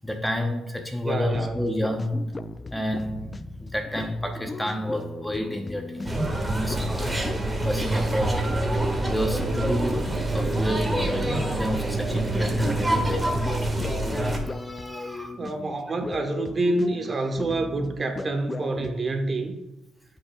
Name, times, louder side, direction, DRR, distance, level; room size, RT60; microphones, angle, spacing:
voice 1, 0.0-2.2 2.7-7.3 7.6-8.5 9.1-13.3 14.4-15.4 16.8-16.9, equal, 5° left, 0.9 m, -30 dB
voice 2, 1.0-1.7 15.2-19.6, right 2 dB, 35° right, 1.2 m, -27 dB
sound 1, 1.3-19.0, left 3 dB, 25° left, 0.4 m, -37 dB
sound 2, 6.0-14.4, right 1 dB, 15° right, 1.6 m, -26 dB
14.0 x 5.5 x 2.3 m
cardioid pair, 90°, 0 cm